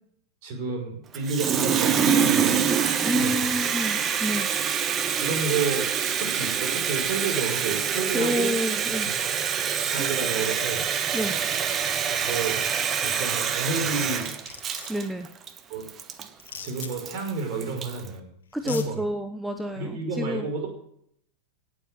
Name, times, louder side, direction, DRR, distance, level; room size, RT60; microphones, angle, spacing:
voice 1, 0.4-2.6 3.1-3.5 5.2-8.5 9.0-9.4 9.9-10.8 12.2-12.6 13.0-14.4 15.7-15.9 16.6-18.3 18.6-19.0 19.7-20.7, right 4 dB, 45° right, 3 dB, 5.4 m, -30 dB
Water tap faucet, 1.1-18.1, right 7 dB, 25° right, 1.3 m, -26 dB
voice 2, 3.0-4.5 8.1-9.1 10.0-10.1 11.1-11.4 14.9-15.3 18.5-20.5, equal, 5° right, 8 dB, 0.9 m, -29 dB
sound 1, 11.5-11.9 12.2-12.6 13.8-13.9 14.2-15.0 16.4-16.9 18.0-18.1 18.5-18.9, left 8 dB, 65° left, 1.8 m, -40 dB
17.5 x 7.6 x 8.0 m, 0.70 s
figure-of-eight pair, 90°, 0 cm